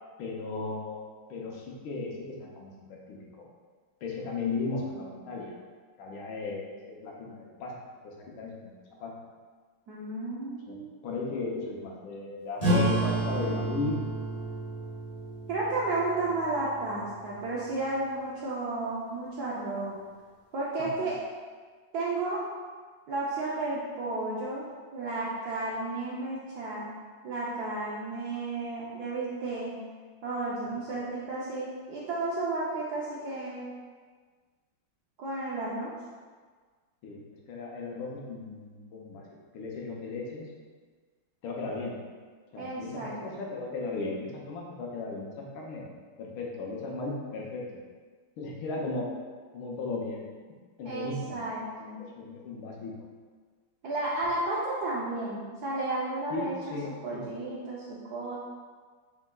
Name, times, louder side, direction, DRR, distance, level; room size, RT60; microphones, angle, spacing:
voice 1, 0.2-1.0 1.3-3.4 4.0-5.6 6.0-7.7 8.0-9.1 10.7-14.0 20.8-21.1 37.0-37.2 37.5-39.2 39.5-40.5 41.4-41.9 42.5-45.9 46.2-47.6 48.4-49.1 49.5-50.3 50.8-51.6 52.0-52.9 56.3-57.4, left 3 dB, 80° left, -2 dB, 1.6 m, -36 dB
voice 2, 9.9-11.0 15.5-20.0 20.5-21.2 21.9-22.4 23.1-24.6 24.9-26.9 27.2-29.8 30.2-33.7 35.2-35.9 42.6-43.1 50.8-52.0 53.8-58.4, right 2 dB, 70° right, -6 dB, 0.9 m, -33 dB
sound 1, 12.6-17.7, right 1 dB, 20° left, 1.4 m, -31 dB
4.5 x 4.1 x 2.2 m, 1.5 s
omnidirectional pair, 2.2 m